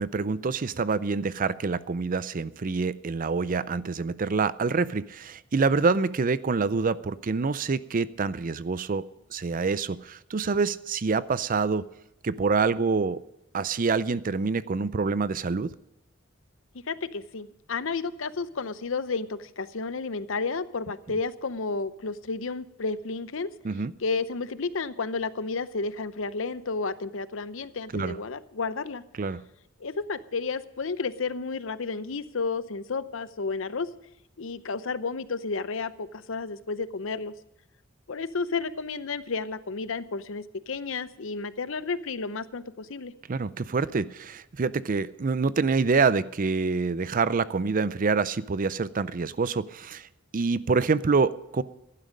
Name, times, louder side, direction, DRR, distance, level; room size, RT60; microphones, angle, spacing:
voice 1, 0.0-11.8 12.2-13.2 13.5-15.7 23.6-23.9 27.9-28.2 29.2-29.4 43.3-50.1 50.3-51.6, right 4 dB, 40° right, 17 dB, 0.5 m, -26 dB
voice 2, 16.7-23.5 24.0-29.0 29.8-33.9 34.4-37.3 38.1-43.1, left 4 dB, 70° left, 15 dB, 0.7 m, -32 dB
15.5 x 11.5 x 5.2 m, 0.87 s
head